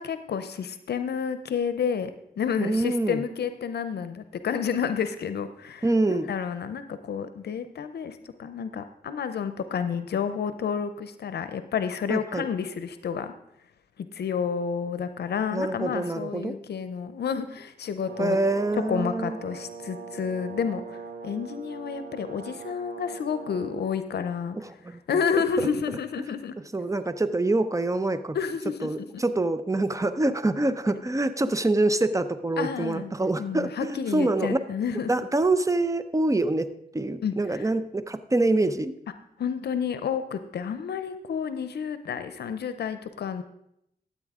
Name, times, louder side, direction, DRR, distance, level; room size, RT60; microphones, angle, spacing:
voice 1, 0.0-2.1 2.4-13.3 14.0-18.4 18.9-21.0 21.2-24.6 24.9-26.5 28.3-29.2 32.6-33.1 33.4-35.1 37.2-37.7 39.4-43.4, left 7 dB, 85° left, 10 dB, 0.6 m, -30 dB
voice 2, 2.6-3.2 5.8-6.3 12.1-12.5 15.5-16.6 18.2-19.4 24.5-25.0 25.6-25.7 26.7-28.4 28.8-34.6 35.1-36.7 36.9-38.9, right 2 dB, 20° right, 12 dB, 0.8 m, -25 dB
Brass instrument, 18.0-23.9, right 4 dB, 80° right, 1.6 m, -41 dB
12.5 x 8.5 x 3.6 m, 0.78 s
cardioid pair, 50°, 16 cm